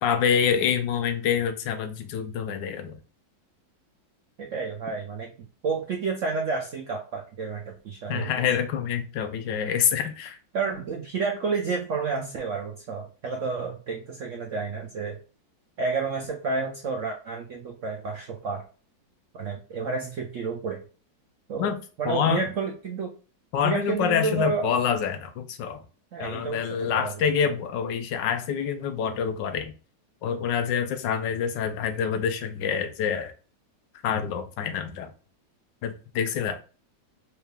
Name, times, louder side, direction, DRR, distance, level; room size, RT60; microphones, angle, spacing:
voice 1, 0.0-3.0 8.1-10.4 21.6-21.8 22.0-22.4 23.5-25.8 26.2-29.7 30.2-33.3 34.0-35.1 35.8-36.6, left 7 dB, 75° left, 8 dB, 1.3 m, -26 dB
voice 2, 4.4-5.3 5.6-8.3 10.5-15.2 15.8-18.6 19.3-20.8 21.5-23.1 23.6-24.7 26.1-27.3, right 4 dB, 70° right, 2 dB, 0.7 m, -30 dB
4.5 x 3.4 x 2.2 m, 0.36 s
omnidirectional pair, 2.0 m